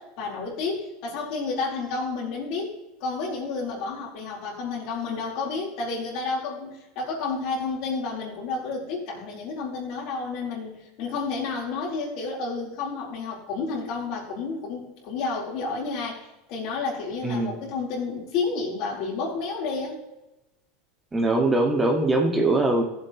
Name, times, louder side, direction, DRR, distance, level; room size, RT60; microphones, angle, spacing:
voice 1, 0.0-2.7 3.0-20.0, left 4 dB, 60° left, -3 dB, 4.3 m, -31 dB
voice 2, 17.2-17.6 21.1-22.8, right 2 dB, 15° right, 2 dB, 1.9 m, -22 dB
15.0 x 7.8 x 3.2 m, 0.97 s
supercardioid pair, 115°, 0 cm